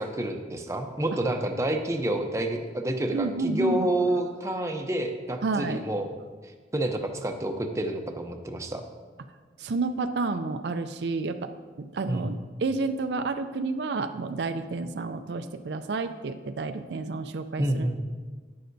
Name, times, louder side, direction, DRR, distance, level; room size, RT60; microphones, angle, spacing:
voice 1, 0.0-6.1 6.7-8.8 12.1-12.3 17.6-18.0, right 1 dB, 15° right, 4 dB, 0.6 m, -28 dB
voice 2, 3.1-3.9 5.4-5.8 9.6-11.5 11.8-17.9, right 3 dB, 70° right, 9 dB, 0.4 m, -30 dB
11.0 x 9.4 x 2.7 m, 1.4 s
head